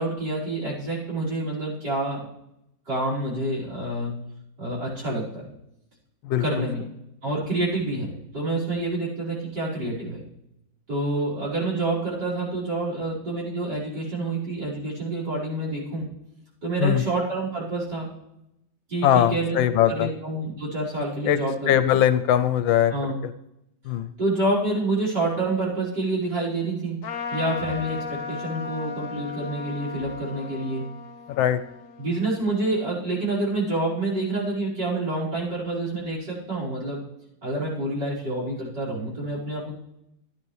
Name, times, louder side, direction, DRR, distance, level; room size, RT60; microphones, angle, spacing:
voice 1, 0.0-2.3 2.9-4.1 4.6-5.5 6.4-6.8 7.2-10.2 10.9-16.1 16.6-18.1 18.9-19.6 19.9-22.0 22.9-23.2 24.2-27.0 27.3-30.8 32.0-37.0 37.4-39.7, right 2 dB, 55° right, -5 dB, 5.8 m, -27 dB
voice 2, 19.0-20.1 21.3-21.4 21.7-22.9 23.2-23.3 23.8-24.1 31.3-31.6, left 11 dB, 80° left, 12 dB, 1.4 m, -20 dB
Trumpet, 27.0-32.8, left 5 dB, 55° left, 1.0 m, -36 dB
15.0 x 10.5 x 3.3 m, 0.83 s
omnidirectional pair, 2.1 m